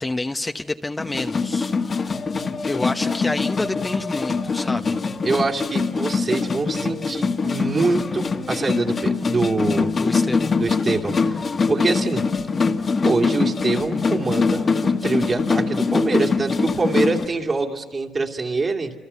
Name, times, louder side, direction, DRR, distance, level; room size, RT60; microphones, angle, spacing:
voice 1, 0.0-2.1 2.7-5.0 9.9-10.5, left 2 dB, 15° left, 5 dB, 0.9 m, -28 dB
sound 1, 1.0-17.3, left 4 dB, 40° left, 1.7 m, -23 dB
voice 2, 5.2-9.9 10.6-12.3 13.0-18.9, right 3 dB, 35° right, 2 dB, 2.7 m, -24 dB
29.5 x 27.5 x 7.0 m, 1.5 s
cardioid pair, 90°, 0 cm